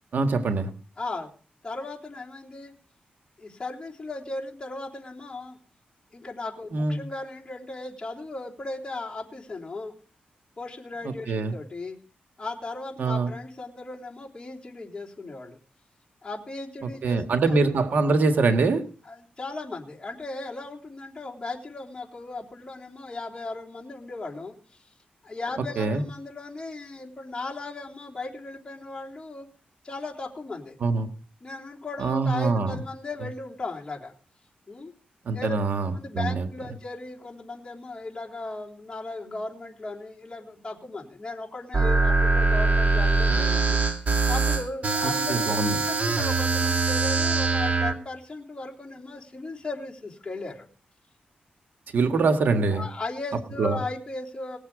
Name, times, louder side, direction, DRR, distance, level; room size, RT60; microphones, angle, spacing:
voice 1, 0.1-0.7 6.7-7.0 11.0-11.5 13.0-13.3 16.8-18.8 25.8-26.0 30.8-31.1 32.0-32.8 35.2-36.5 45.0-45.8 51.9-52.9 53.6-53.8, right 3 dB, 75° right, 7 dB, 1.6 m, -24 dB
voice 2, 1.0-1.3 1.6-2.7 3.4-5.6 6.1-9.9 10.6-12.0 12.4-15.6 16.2-17.6 19.0-24.5 25.2-29.5 29.8-30.8 31.4-34.1 34.7-34.9 35.3-35.6 35.9-43.8 44.3-50.7 52.7-54.6, left 2 dB, 25° left, -3 dB, 3.6 m, -36 dB
sound 1, 41.7-47.9, right 3 dB, 45° right, 2.4 m, -23 dB
19.5 x 7.3 x 4.9 m, 0.40 s
cardioid pair, 80°, 3 cm